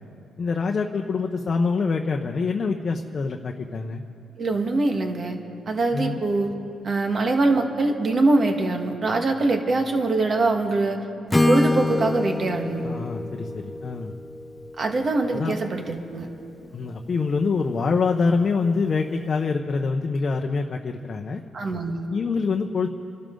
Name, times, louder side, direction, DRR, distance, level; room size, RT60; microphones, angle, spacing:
voice 1, 0.4-4.0 5.9-6.2 12.8-14.1 15.3-15.5 16.7-21.4 22.1-22.9, left 4 dB, 45° left, 2 dB, 0.9 m, -25 dB
voice 2, 4.4-5.4 5.6-6.5 6.8-11.1 11.5-12.8 14.8-16.3 21.5-21.9, right 2 dB, 45° right, 4 dB, 1.7 m, -23 dB
Acoustic guitar / Strum, 11.3-15.3, left 2 dB, 10° left, 0.5 m, -26 dB
29.0 x 12.5 x 3.9 m, 2.7 s
cardioid pair, 90°, 0 cm